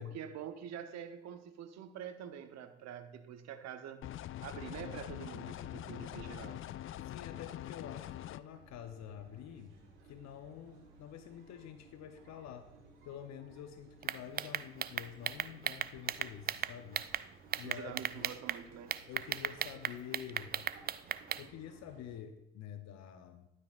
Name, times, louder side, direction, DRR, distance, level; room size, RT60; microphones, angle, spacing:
voice 1, 0.1-4.1 4.4-6.6 17.6-18.9, right 9 dB, 60° right, 10 dB, 0.9 m, -46 dB
sound 1, 4.0-8.4, left 13 dB, 45° left, 0.4 m, -44 dB
voice 2, 7.0-9.8 10.1-12.7 13.0-17.1 17.6-18.4 19.1-20.6 21.3-23.5, left 9 dB, 60° left, 9 dB, 0.8 m, -48 dB
sound 2, 8.5-22.2, right 3 dB, 80° right, 1.8 m, -60 dB
sound 3, 14.0-17.2 17.5-18.6 18.9-21.4, right 10 dB, 30° right, 0.4 m, -36 dB
11.5 x 9.6 x 2.5 m, 0.89 s
hypercardioid pair, 50°, 30 cm